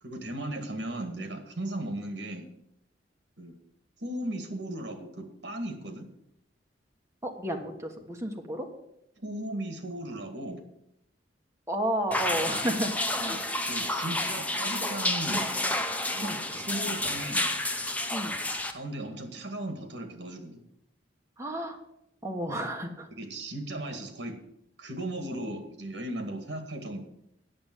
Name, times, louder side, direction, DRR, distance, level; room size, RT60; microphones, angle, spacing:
voice 1, 0.0-2.5 3.4-3.6 4.0-6.1 9.2-10.6 13.1-15.5 16.1-17.5 18.7-20.6 23.2-24.4 24.8-27.0, right 1 dB, 70° right, 6 dB, 1.8 m, -36 dB
voice 2, 7.2-8.7 11.7-12.9 16.2-16.4 18.1-18.3 21.4-21.8 22.2-23.1, right 1 dB, 15° right, 2 dB, 1.4 m, -31 dB
sound 1, 12.1-18.7, left 1 dB, 10° left, 0.8 m, -30 dB
8.7 x 6.9 x 7.7 m, 0.81 s
head